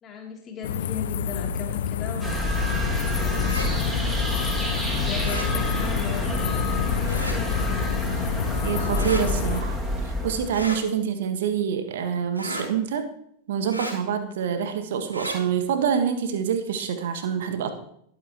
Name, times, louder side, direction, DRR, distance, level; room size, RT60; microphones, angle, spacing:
voice 1, 0.0-3.7 4.8-6.4 6.9-7.6 8.1-8.3, left 6 dB, 25° left, 0 dB, 3.2 m, -37 dB
sound 1, 0.6-9.6, left 9 dB, 60° left, 0.4 m, -29 dB
sound 2, 2.2-10.7, equal, 5° right, 2.4 m, -28 dB
sound 3, 3.4-3.7 5.2-5.5 7.0-7.4 8.9-9.2 10.5-10.8 12.3-12.7 13.7-13.9 15.1-15.4, equal, 85° right, 2.3 m, -33 dB
voice 2, 8.6-9.8 10.0-13.1 13.5-17.7, right 7 dB, 55° right, 8 dB, 1.5 m, -26 dB
21.0 x 8.8 x 3.1 m, 0.71 s
figure-of-eight pair, 90°, 0 cm